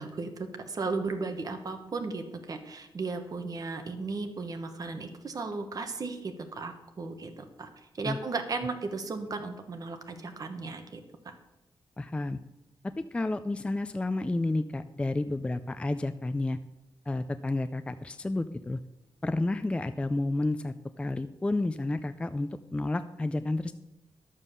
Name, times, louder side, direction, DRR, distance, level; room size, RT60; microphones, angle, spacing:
voice 1, 0.0-7.7 8.0-11.3, right 3 dB, 40° right, 6 dB, 1.2 m, -35 dB
voice 2, 12.0-12.4 12.8-16.6 17.1-18.8 19.2-23.7, left 2 dB, 10° left, 10 dB, 0.4 m, -31 dB
11.5 x 7.3 x 6.7 m, 0.94 s
wide cardioid pair, 150°, 9 cm